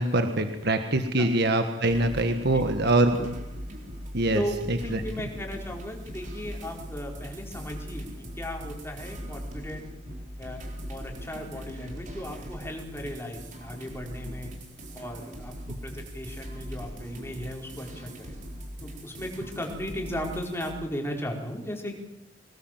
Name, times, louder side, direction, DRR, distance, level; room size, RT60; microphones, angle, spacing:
voice 1, 0.0-3.3 4.1-4.4 4.7-5.0, right 2 dB, 60° right, 7 dB, 1.6 m, -24 dB
sound 1, 1.9-20.7, equal, 40° right, 4.1 m, -40 dB
voice 2, 4.8-8.1 8.4-9.9 10.4-14.5 14.9-15.5 15.8-18.3 18.8-21.9, equal, 15° left, 1 dB, 4.5 m, -36 dB
24.5 x 19.5 x 7.5 m, 0.90 s
head